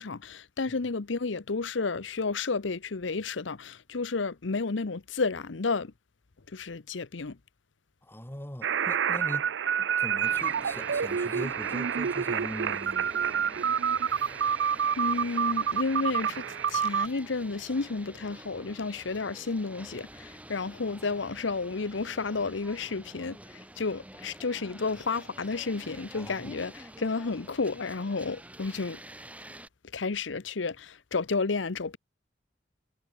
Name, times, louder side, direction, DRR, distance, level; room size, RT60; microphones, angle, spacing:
voice 1, 0.0-5.9 6.5-7.4 15.0-29.0 29.9-32.0, left 4 dB, 70° left, 0.8 m, -31 dB
voice 2, 8.0-9.5 9.8-13.1 26.2-26.5, equal, 10° left, 2.0 m, -41 dB
sound 1, 8.6-17.1, right 7 dB, 65° right, 0.5 m, -28 dB
sound 2, 10.2-29.7, right 1 dB, 5° right, 5.1 m, -48 dB
head